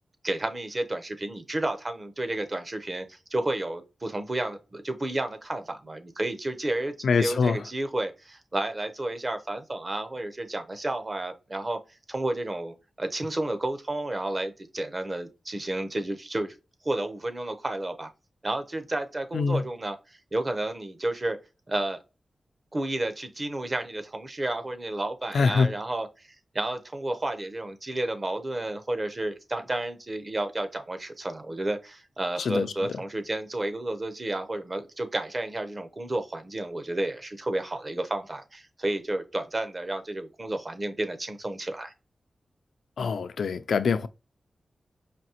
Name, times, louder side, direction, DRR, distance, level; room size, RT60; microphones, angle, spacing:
voice 1, 0.2-11.8 12.1-16.6 16.8-18.1 18.4-20.0 20.3-21.4 21.7-22.0 22.7-26.3 26.5-41.9, right 1 dB, 30° right, 0.7 m, -31 dB
voice 2, 7.0-7.6 19.3-19.6 25.3-25.7 32.4-32.7 43.0-44.1, left 5 dB, 90° left, 0.4 m, -24 dB
5.1 x 2.7 x 2.9 m
wide cardioid pair, 95°, 0 cm